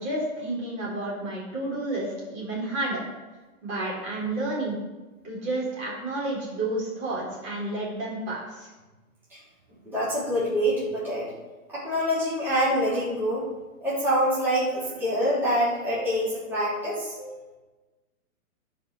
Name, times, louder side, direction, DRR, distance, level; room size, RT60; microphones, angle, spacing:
voice 1, 0.0-3.0 3.6-4.8 5.2-8.7, right 2 dB, 30° right, -5 dB, 3.9 m, -30 dB
voice 2, 9.8-11.3 11.7-13.5 13.8-17.3, equal, 5° right, -12 dB, 3.7 m, -26 dB
13.0 x 5.3 x 6.2 m, 1.2 s
hypercardioid pair, 160°, 44 cm